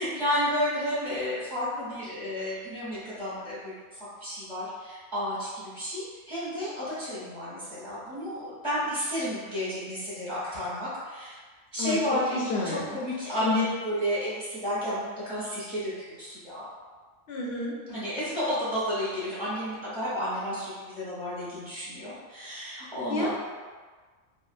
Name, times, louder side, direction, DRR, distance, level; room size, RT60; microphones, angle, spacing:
voice 1, 0.0-3.8 4.2-11.3 11.7-16.6 17.9-23.3, equal, 35° right, -11 dB, 1.2 m, -31 dB
voice 2, 12.3-13.0 13.4-13.6 17.3-17.7 22.8-23.3, left 3 dB, 65° left, -3 dB, 0.8 m, -30 dB
3.6 x 2.0 x 2.4 m, 1.5 s
omnidirectional pair, 1.3 m